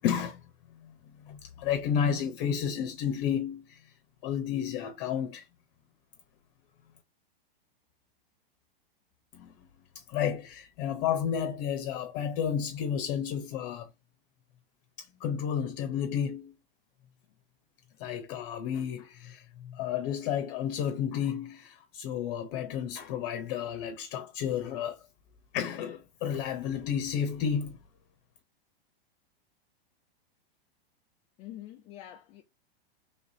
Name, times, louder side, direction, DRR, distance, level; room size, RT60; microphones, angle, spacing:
voice 1, 0.0-0.4 0.8-0.9 1.2-3.8 4.2-5.5 9.3-9.6 10.1-13.9 15.0-16.5 18.0-25.0 25.5-27.8, left 8 dB, 45° left, 0.8 m, -31 dB
voice 2, 31.4-32.4, left 13 dB, 25° left, 0.4 m, -45 dB
4.0 x 3.5 x 2.6 m
hypercardioid pair, 130°, 30 cm